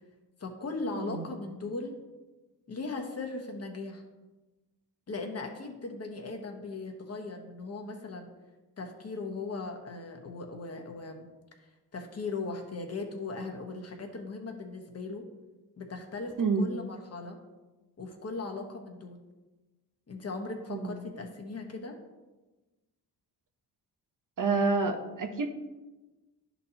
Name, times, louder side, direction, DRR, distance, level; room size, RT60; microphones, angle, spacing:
voice 1, 0.4-1.9 2.7-4.0 5.1-8.3 8.8-11.3 11.9-15.3 15.8-17.4 18.0-19.2 20.1-22.0, left 3 dB, 35° left, 3 dB, 1.2 m, -38 dB
voice 2, 1.0-1.3 16.4-16.7 20.7-21.0 24.4-25.5, right 4 dB, 45° right, 6 dB, 0.9 m, -28 dB
11.0 x 4.2 x 2.9 m, 1.2 s
cardioid pair, 80°, 42 cm